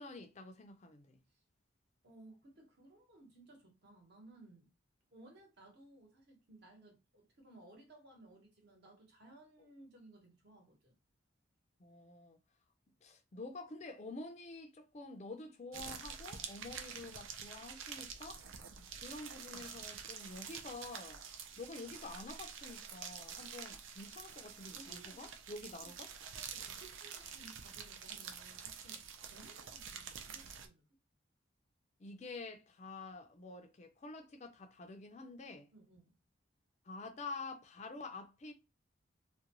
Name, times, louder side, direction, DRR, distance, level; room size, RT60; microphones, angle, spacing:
voice 1, 0.0-1.2 11.8-12.4 13.0-18.4 19.0-21.2 21.6-26.1 32.0-35.7 36.9-38.5, left 3 dB, 35° left, 0.4 m, -48 dB
voice 2, 2.0-4.7 5.1-11.0 18.7-18.9 24.7-25.3 25.8-25.9 26.3-29.0 29.3-30.8 35.7-36.2, right 2 dB, 55° right, 1.0 m, -59 dB
sound 1, 15.7-30.7, right 7 dB, 75° right, 0.4 m, -48 dB
2.4 x 2.2 x 2.9 m
head